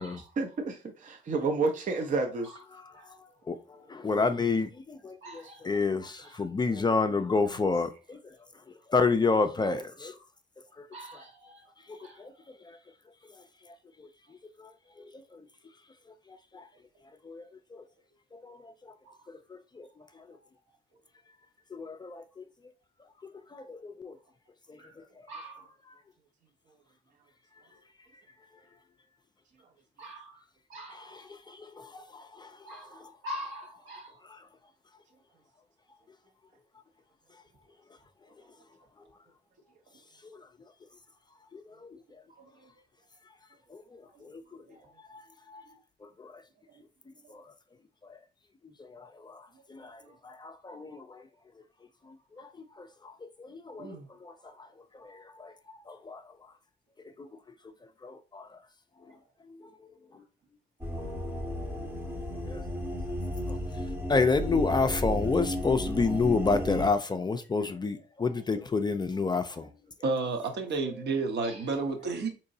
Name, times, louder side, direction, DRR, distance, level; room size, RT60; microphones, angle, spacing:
voice 1, 0.2-2.5 4.1-4.2 5.4-5.5 53.8-54.1, right 3 dB, 40° right, 0.5 m, -31 dB
voice 2, 3.9-8.2 8.9-10.1 11.1-11.2 11.9-12.3 12.6-12.8 14.6-14.7 15.0-15.1 15.3-15.4 16.5-16.6 17.2-17.4 17.7-17.8 18.3-18.7 19.3-19.4 19.8-19.9 21.7-22.4 23.5-24.1 30.9-32.5 33.0-33.1 34.3-34.4 40.2-40.4 41.5-41.6 43.7-44.4 45.1-45.2 45.5-45.6 46.0-46.3 47.3-47.4 48.1-48.2 48.9-49.4 49.7-51.2 52.4-52.5 52.8-53.1 53.4-54.0 54.2-54.3 54.9-56.2 57.2-57.3 58.0-58.5 61.0-62.6 63.5-63.6 64.1-69.7, left 4 dB, 20° left, 0.4 m, -30 dB
voice 3, 5.2-5.8 6.2-6.4 10.9-11.6 12.0-12.2 19.0-19.2 24.8-24.9 25.3-25.7 30.0-30.4 30.7-31.1 32.7-34.2 42.4-42.5 44.1-44.3 44.7-44.8 49.8-50.2 61.8-62.1 71.4-71.6, equal, 80° right, 1.5 m, -45 dB
sound 1, 60.8-66.9, equal, 10° right, 0.7 m, -33 dB
voice 4, 70.0-72.3, right 3 dB, 60° right, 0.9 m, -30 dB
3.7 x 3.0 x 2.6 m
cardioid pair, 90°, 20 cm